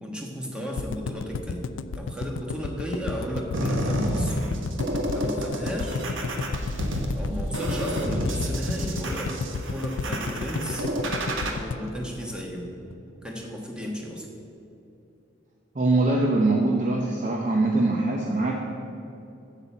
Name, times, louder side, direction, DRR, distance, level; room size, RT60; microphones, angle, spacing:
voice 1, 0.0-1.6 1.9-4.5 5.1-6.1 7.2-9.4 9.7-10.9 11.4-12.7 13.2-14.3, equal, 5° right, 0 dB, 1.2 m, -34 dB
sound 1, 0.8-12.9 13.2-13.3 13.5-13.6, left 5 dB, 75° left, 0.3 m, -32 dB
sound 2, 3.5-11.5, equal, 80° right, 1.2 m, -29 dB
voice 2, 15.7-18.5, right 2 dB, 40° right, 0 dB, 0.7 m, -22 dB
7.9 x 7.5 x 7.1 m, 2.8 s
head